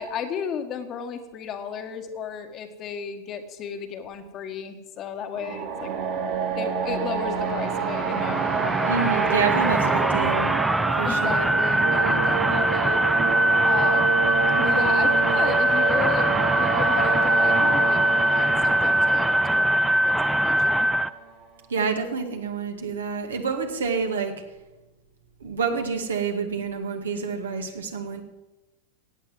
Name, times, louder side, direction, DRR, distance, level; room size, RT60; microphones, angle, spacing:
voice 1, 0.0-5.9 6.5-8.7 11.0-13.0 13.7-14.2 14.6-16.3 16.6-20.9, left 7 dB, 30° left, 6 dB, 1.7 m, -34 dB
sound 1, 5.3-21.2, right 6 dB, 45° right, 2.4 m, -28 dB
sound 2, 7.4-21.1, right 1 dB, 5° right, 0.5 m, -22 dB
voice 2, 8.8-10.6 11.0-11.5 21.7-24.3 25.4-28.2, right 5 dB, 65° right, 4 dB, 2.0 m, -28 dB
16.0 x 9.2 x 7.7 m, 1.1 s
figure-of-eight pair, 90°, 0 cm